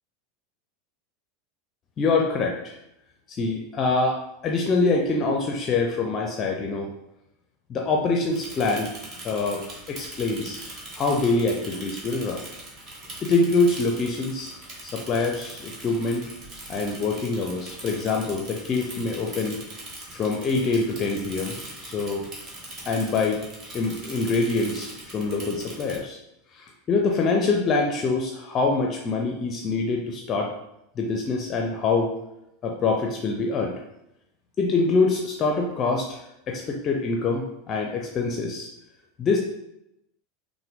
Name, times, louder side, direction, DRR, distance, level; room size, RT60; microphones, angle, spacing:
voice 1, 2.0-2.8 3.3-6.9 7.7-8.9 9.2-10.6 10.9-12.4 13.2-14.5 14.8-16.3 16.7-19.6 20.1-22.2 22.8-23.4 23.7-26.2 26.5-30.5 31.0-32.1 32.6-33.7 34.6-36.2 36.5-38.7 39.2-39.4, left 3 dB, 30° left, 1 dB, 0.6 m, -25 dB
Bicycle / Mechanisms, 8.3-26.0, right 1 dB, 35° right, 1.3 m, -41 dB
5.6 x 2.2 x 3.6 m, 0.85 s
figure-of-eight pair, 80°, 0 cm